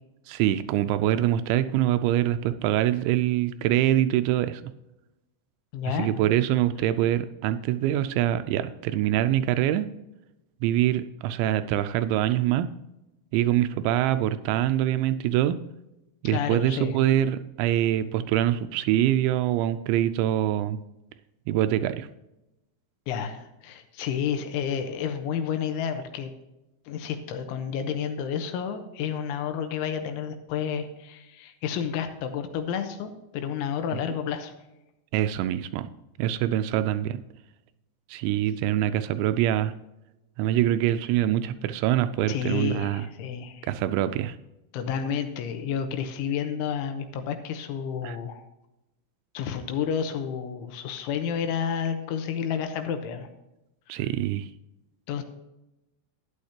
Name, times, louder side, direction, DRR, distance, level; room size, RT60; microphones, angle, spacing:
voice 1, 0.3-4.7 5.9-9.9 10.6-12.7 13.3-15.6 16.2-20.8 21.5-22.1 35.1-35.9 36.2-37.2 38.1-39.7 40.4-43.0 43.6-44.4 48.0-48.2 53.9-54.5, right 12 dB, 85° right, 11 dB, 2.7 m, -24 dB
voice 2, 5.7-6.1 16.2-17.0 23.1-26.3 26.9-34.5 42.3-43.7 44.7-48.4 49.3-53.3 53.9-54.0 55.1-55.2, left 7 dB, 80° left, 7 dB, 3.2 m, -30 dB
13.0 x 9.8 x 2.8 m, 0.93 s
omnidirectional pair, 5.7 m